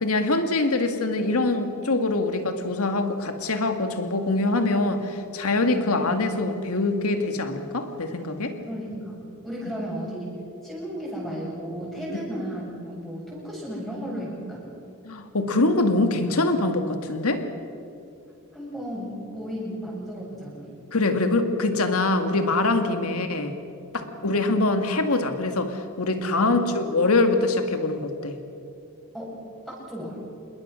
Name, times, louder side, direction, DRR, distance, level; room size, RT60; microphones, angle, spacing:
voice 1, 0.0-8.6 12.1-12.2 15.0-17.4 20.9-23.5 23.9-28.4, left 2 dB, 80° left, 7 dB, 2.0 m, -24 dB
voice 2, 8.7-10.3 10.6-14.6 18.5-20.7 22.8-23.0 24.0-24.1 26.4-26.6 29.1-29.3 29.7-30.2, equal, ahead, -5 dB, 7.5 m, -34 dB
27.0 x 21.5 x 6.4 m, 2.6 s
head